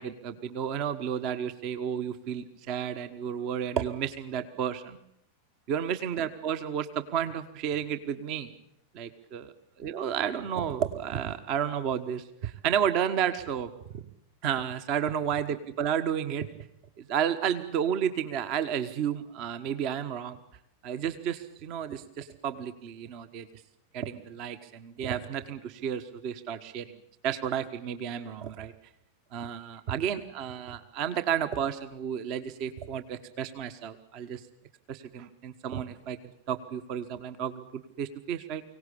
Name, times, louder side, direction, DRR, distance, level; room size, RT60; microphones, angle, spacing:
voice 1, 0.0-5.0 5.7-8.5 8.9-9.5 9.8-14.0 14.4-16.5 17.0-20.4 20.8-23.5 23.9-26.9 27.2-28.7 29.3-34.4 34.9-36.2 36.5-38.6, right 8 dB, 40° right, 11 dB, 1.3 m, -32 dB
24.0 x 18.0 x 8.5 m, 0.75 s
figure-of-eight pair, 90°, 0 cm